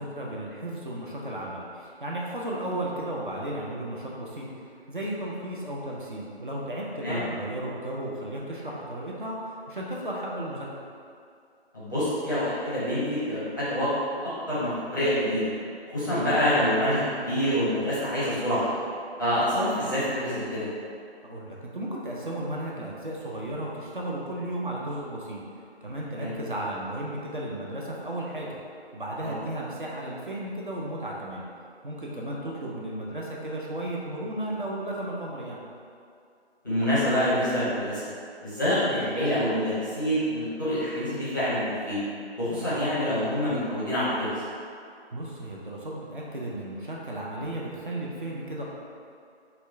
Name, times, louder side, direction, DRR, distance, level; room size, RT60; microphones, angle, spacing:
voice 1, 0.0-10.7 16.0-16.2 21.2-25.4 25.8-28.6 28.9-31.4 31.8-35.6 42.5-42.7 45.1-48.6, right 1 dB, 50° right, -4 dB, 0.5 m, -34 dB
voice 2, 11.7-13.9 14.2-15.5 15.9-18.7 19.2-20.7 26.1-26.4 29.2-29.3 36.6-38.0 38.4-42.0 42.4-44.3, equal, 20° left, -12 dB, 0.6 m, -26 dB
4.1 x 2.1 x 2.6 m, 2.3 s
figure-of-eight pair, 155°, 33 cm